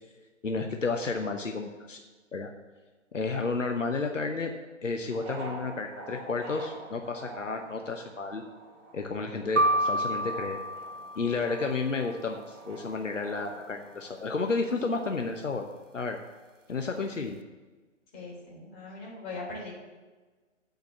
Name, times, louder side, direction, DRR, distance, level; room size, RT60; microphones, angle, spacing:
voice 1, 0.4-2.0 2.3-2.5 3.1-4.5 4.8-8.4 8.9-10.6 11.2-15.7 15.9-16.2 16.7-17.4, left 4 dB, 75° left, 4 dB, 1.0 m, -31 dB
sound 1, 5.1-14.1, right 2 dB, 15° right, 0.9 m, -46 dB
sound 2, 9.6-11.7, right 1 dB, 80° right, 0.8 m, -28 dB
voice 2, 18.1-19.7, left 3 dB, 25° left, -5 dB, 3.4 m, -40 dB
9.1 x 5.1 x 7.4 m, 1.3 s
figure-of-eight pair, 130°, 38 cm